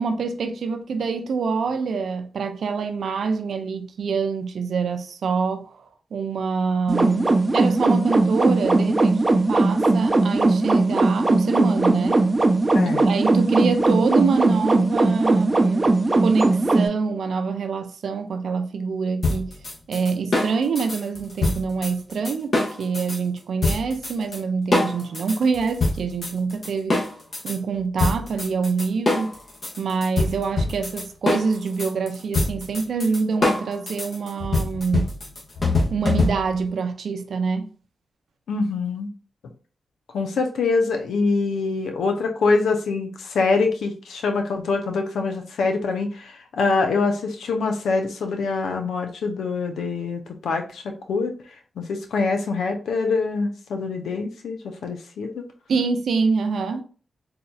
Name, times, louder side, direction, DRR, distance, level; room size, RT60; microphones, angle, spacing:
voice 1, 0.0-5.8 6.1-12.3 13.0-19.5 19.9-27.0 27.4-29.4 29.8-35.1 35.9-37.7 55.7-56.8, right 5 dB, 75° right, 0.5 m, -25 dB
sound 1, 6.9-16.9, right 2 dB, 30° right, 0.6 m, -19 dB
voice 2, 12.7-13.1 38.5-39.1 40.1-50.8 51.1-51.3 51.8-55.4, left 4 dB, 85° left, 0.6 m, -24 dB
sound 2, 19.2-23.2 23.6-24.4 24.7-27.6 28.0-36.7, left 2 dB, 55° left, 1.4 m, -24 dB
4.1 x 2.7 x 2.3 m
supercardioid pair, 45°, 0 cm